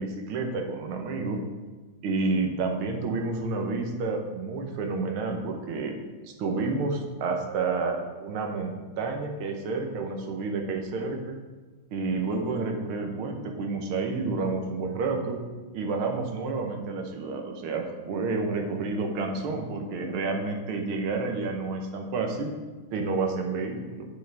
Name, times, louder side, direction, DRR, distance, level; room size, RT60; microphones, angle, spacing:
voice 1, 0.0-1.4 2.0-5.9 6.2-11.3 11.9-15.4 15.7-22.5 22.9-24.1, right 3 dB, 85° right, 3 dB, 1.9 m, -30 dB
9.5 x 6.2 x 3.4 m, 1.3 s
omnidirectional pair, 2.3 m